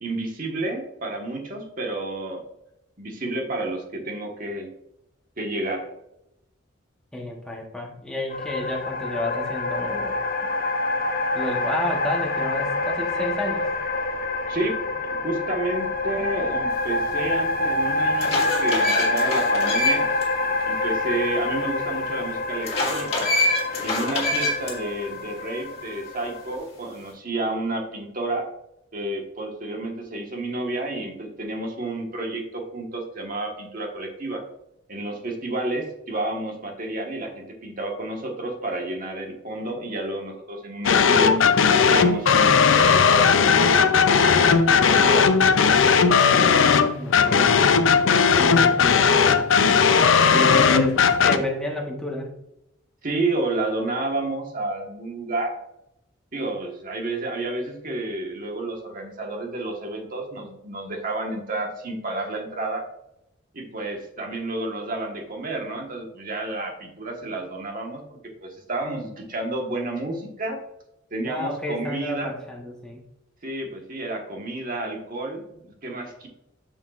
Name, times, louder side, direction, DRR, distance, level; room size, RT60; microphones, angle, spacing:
voice 1, 0.0-2.4 3.0-4.7 5.4-5.9 14.5-14.9 15.2-20.1 20.6-23.3 23.8-28.5 28.9-34.4 34.9-41.4 41.7-45.3 53.0-55.5 56.3-62.9 63.5-70.6 71.1-72.4 73.4-76.3, right 2 dB, 45° right, 2 dB, 1.4 m, -30 dB
voice 2, 7.1-10.2 11.3-13.8 46.5-47.7 48.3-49.2 50.3-52.3 71.2-73.0, left 1 dB, 5° left, -1 dB, 1.0 m, -30 dB
sound 1, 8.3-26.5, left 2 dB, 50° left, 0.8 m, -27 dB
sound 2, 17.2-17.3 17.9-20.2 20.6-20.7 22.6-24.7, left 1 dB, 30° left, 1.9 m, -25 dB
sound 3, 40.8-51.4, left 6 dB, 85° left, 0.5 m, -17 dB
7.0 x 6.6 x 2.5 m, 0.81 s
head